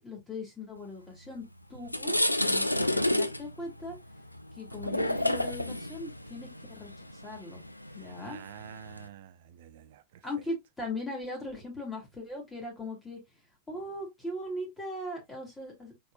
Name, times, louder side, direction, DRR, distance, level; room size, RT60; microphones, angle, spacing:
voice 1, 0.0-1.4 1.7-4.0 4.6-6.9 7.2-7.6 7.9-8.4 10.2-13.2 13.7-16.1, left 1 dB, 10° left, 2.5 m, -39 dB
sound 1, 1.3-1.4 1.7-9.1, left 1 dB, 85° left, 0.4 m, -30 dB
voice 2, 8.0-10.3, right 11 dB, 55° right, 0.4 m, -49 dB
4.2 x 4.2 x 2.4 m
figure-of-eight pair, 90°, 0 cm